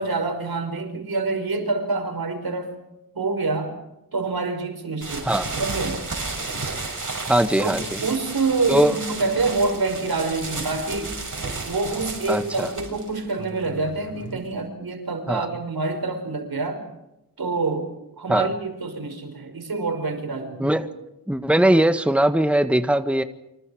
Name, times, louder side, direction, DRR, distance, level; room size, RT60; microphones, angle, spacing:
voice 1, 0.0-2.7 3.1-3.8 4.1-6.0 7.6-7.7 8.0-11.2 11.6-16.9 17.4-17.9 18.2-20.8, right 3 dB, 80° right, 5 dB, 5.4 m, -26 dB
sound 1, 5.0-14.6, right 3 dB, 55° right, 7.0 m, -33 dB
voice 2, 7.3-7.8 8.7-9.0 12.3-12.7 15.3-15.5 18.3-18.5 20.6-20.9 21.3-23.2, right 1 dB, 5° right, 9 dB, 1.6 m, -20 dB
29.0 x 26.0 x 5.0 m, 0.90 s
cardioid pair, 45°, 36 cm